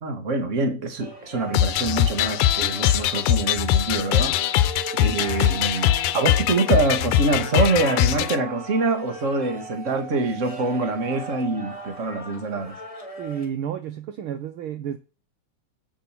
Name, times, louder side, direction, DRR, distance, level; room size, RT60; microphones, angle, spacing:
voice 1, 0.0-4.7 5.0-12.8, right 3 dB, 30° right, 1.7 m, -25 dB
sound 1, 1.0-13.5, left 1 dB, 10° left, 2.3 m, -41 dB
Organ, 1.3-12.2, right 5 dB, 50° right, 3.4 m, -42 dB
sound 2, 1.5-8.4, left 12 dB, 85° left, 2.1 m, -22 dB
voice 2, 13.2-15.0, right 9 dB, 65° right, 1.3 m, -31 dB
8.4 x 7.0 x 6.0 m
omnidirectional pair, 3.4 m